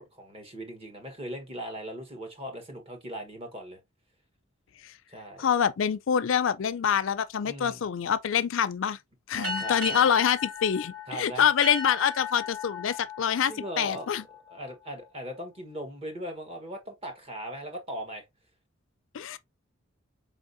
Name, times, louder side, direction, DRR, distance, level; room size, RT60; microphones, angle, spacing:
voice 1, 0.0-3.8 5.1-5.4 7.4-7.8 9.3-10.1 11.1-11.5 13.5-14.1 14.5-18.2, right 1 dB, 30° right, 1.2 m, -39 dB
voice 2, 5.4-9.0 9.3-14.2 19.1-19.4, left 8 dB, 70° left, 0.4 m, -26 dB
sound 1, 9.4-14.5, left 3 dB, 80° right, 3.1 m, -36 dB
4.5 x 3.6 x 2.6 m
head